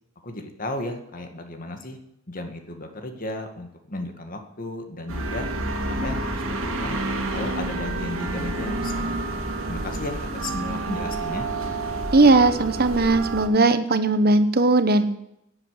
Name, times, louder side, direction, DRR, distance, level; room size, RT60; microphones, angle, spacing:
voice 1, 0.2-2.0 2.3-5.5 6.0-7.0 7.3-9.0 9.6-11.5, left 1 dB, 45° left, 5 dB, 1.9 m, -34 dB
sound 1, 5.1-13.5, right 2 dB, 90° right, 2.3 m, -29 dB
voice 2, 12.1-15.0, right 2 dB, 50° right, 10 dB, 1.1 m, -18 dB
11.5 x 8.1 x 9.7 m, 0.80 s
head